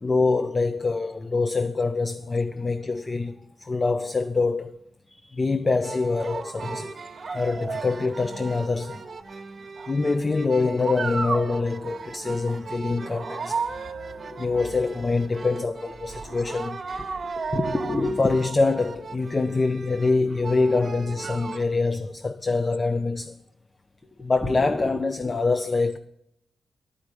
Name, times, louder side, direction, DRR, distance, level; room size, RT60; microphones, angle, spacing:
voice 1, 0.0-4.8 5.3-7.0 7.3-9.4 9.9-13.7 14.4-16.8 18.2-23.4 24.2-26.0, left 3 dB, 35° left, 0.5 m, -25 dB
sound 1, 5.8-21.6, right 4 dB, 50° right, 0.9 m, -35 dB
voice 2, 14.1-14.5 16.2-16.4 17.4-18.4 24.4-25.4, left 2 dB, 15° left, 0.9 m, -30 dB
10.5 x 5.1 x 8.1 m
cardioid pair, 80°, 0 cm